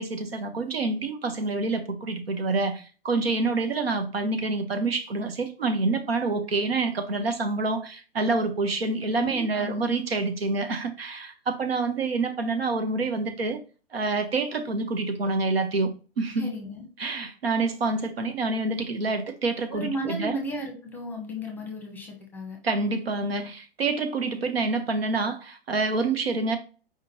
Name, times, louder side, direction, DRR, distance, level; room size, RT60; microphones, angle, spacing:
voice 1, 0.0-13.6 13.9-15.9 16.2-16.5 17.0-20.4 22.6-26.6, right 3 dB, 75° right, 0.9 m, -27 dB
voice 2, 9.1-9.9 16.4-16.9 19.7-22.6, equal, 5° left, 0.9 m, -34 dB
4.8 x 3.7 x 2.7 m
figure-of-eight pair, 120°, 30 cm